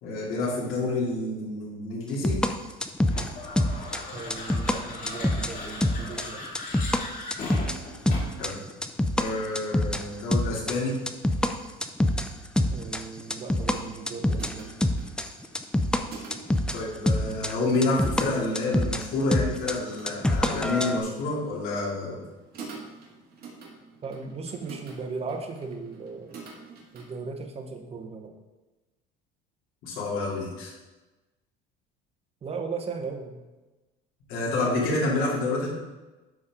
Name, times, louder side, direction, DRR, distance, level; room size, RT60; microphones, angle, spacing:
voice 1, 0.0-2.4 8.4-8.6 9.1-11.0 16.7-22.2 29.8-30.7 34.3-35.7, left 2 dB, 70° left, -5 dB, 2.8 m, -28 dB
sound 1, 2.2-7.0 7.3-10.0 10.3-11.5 11.8-13.8 14.1-16.0 16.3-19.0 19.3-21.0, left 1 dB, 5° left, 0.4 m, -25 dB
sound 2, 3.1-8.5, left 2 dB, 40° left, 2.7 m, -38 dB
voice 2, 4.1-6.4 12.7-14.7 24.0-26.4 26.9-28.4 32.4-33.4, right 4 dB, 30° right, 4 dB, 1.0 m, -37 dB
sound 3, 13.1-27.1, right 4 dB, 50° right, 2.0 m, -48 dB
12.0 x 4.1 x 3.7 m, 1.1 s
cardioid pair, 125°, 21 cm